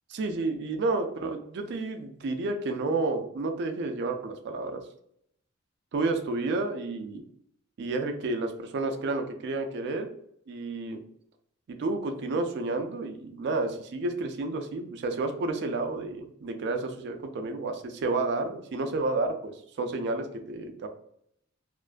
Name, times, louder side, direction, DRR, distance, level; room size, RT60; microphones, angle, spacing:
voice 1, 0.1-4.8 5.9-7.2 7.8-10.1 10.5-11.0 11.7-20.9, right 3 dB, 55° right, 6 dB, 0.3 m, -30 dB
2.4 x 2.2 x 2.4 m, 0.70 s
head